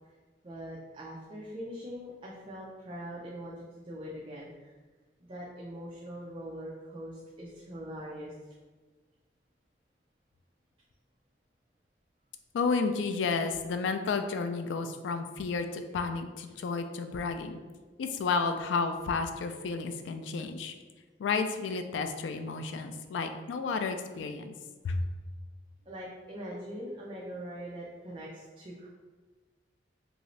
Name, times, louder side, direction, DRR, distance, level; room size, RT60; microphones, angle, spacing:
voice 1, 0.4-4.5 5.2-8.3 25.9-28.9, equal, 30° right, -5 dB, 0.4 m, -42 dB
voice 2, 12.5-17.6 18.0-20.7 21.2-24.5 24.8-25.0, left 4 dB, 75° left, 7 dB, 0.3 m, -31 dB
2.8 x 2.6 x 3.1 m, 1.4 s
head